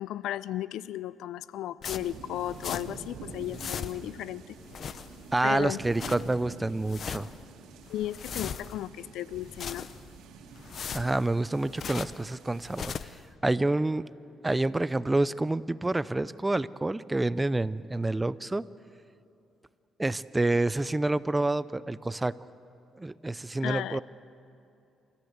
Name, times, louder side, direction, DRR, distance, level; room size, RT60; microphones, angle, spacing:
voice 1, 0.0-4.6 5.4-5.8 7.9-9.9 23.6-24.0, left 13 dB, 85° left, 18 dB, 0.5 m, -35 dB
sound 1, 1.8-3.1 3.4-4.2 4.6-5.4 5.7-6.4 6.8-7.4 7.8-8.9 9.3-10.2 10.6-12.3 12.6-13.2, left 7 dB, 55° left, 0.7 m, -39 dB
sound 2, 2.0-13.0, right 4 dB, 85° right, 2.5 m, -47 dB
voice 2, 5.3-7.3 10.9-12.9 13.4-14.0 14.4-18.6 20.0-22.3 23.0-24.0, right 2 dB, 15° right, 17 dB, 0.5 m, -28 dB
28.0 x 15.0 x 8.1 m, 2.7 s
cardioid pair, 90°, 0 cm